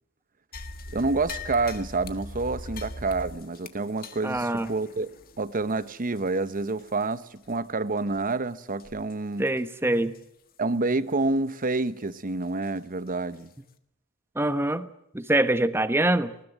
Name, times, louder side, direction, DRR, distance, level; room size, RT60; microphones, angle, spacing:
sound 1, 0.5-7.1 7.4-7.6 8.1-8.3 8.8-9.1 9.5-9.6 10.1-10.2 12.6-12.7 13.3-13.4, left 2 dB, 40° left, 1.5 m, -41 dB
voice 1, 0.9-5.1 5.4-9.5 10.6-13.5, right 3 dB, 40° right, 0.9 m, -28 dB
voice 2, 4.2-4.7 9.4-10.1 14.3-14.9 15.1-16.3, right 1 dB, 10° right, 1.1 m, -24 dB
20.0 x 19.5 x 9.1 m
head